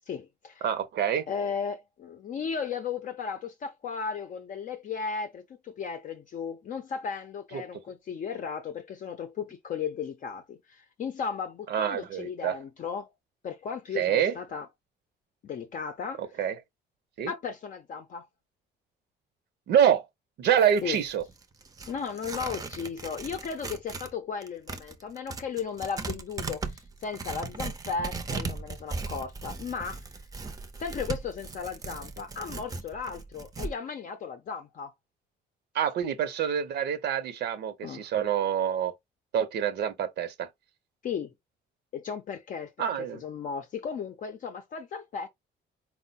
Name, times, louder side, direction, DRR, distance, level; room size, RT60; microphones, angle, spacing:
voice 1, 0.1-0.6 1.3-13.1 13.4-14.7 15.4-16.2 17.3-18.3 20.8-21.0 21.9-30.0 30.8-34.9 37.8-38.1 41.0-41.3 41.9-45.3, left 6 dB, 45° left, 0.6 m, -35 dB
voice 2, 0.6-1.2 7.5-7.6 11.7-12.5 13.9-14.4 16.2-16.5 17.2-17.3 19.7-20.0 20.4-21.2 35.7-38.9 39.3-40.5 42.8-43.2, right 9 dB, 65° right, 0.7 m, -26 dB
Tearing, 20.4-24.1 24.4-33.7, right 4 dB, 20° right, 0.6 m, -38 dB
4.6 x 2.1 x 4.0 m
cardioid pair, 165°, 19 cm